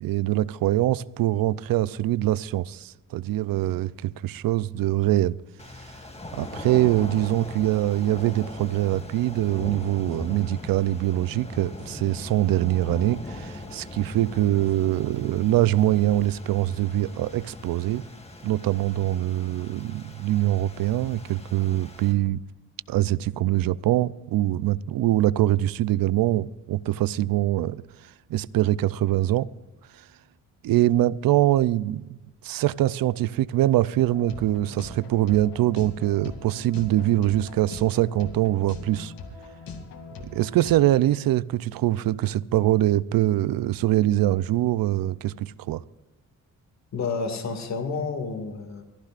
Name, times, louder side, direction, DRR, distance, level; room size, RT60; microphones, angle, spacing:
voice 1, 0.0-5.4 6.3-18.0 18.4-22.4 22.9-27.8 28.3-29.5 30.6-32.2 32.4-39.1 40.2-45.8, right 14 dB, 85° right, 0.5 m, -23 dB
sound 1, 5.6-22.1, left 1 dB, 20° left, 2.0 m, -40 dB
sound 2, 33.9-40.8, left 4 dB, 85° left, 2.5 m, -41 dB
voice 2, 46.9-48.8, left 4 dB, 55° left, 2.2 m, -30 dB
24.0 x 15.0 x 2.5 m
cardioid pair, 140°, 34 cm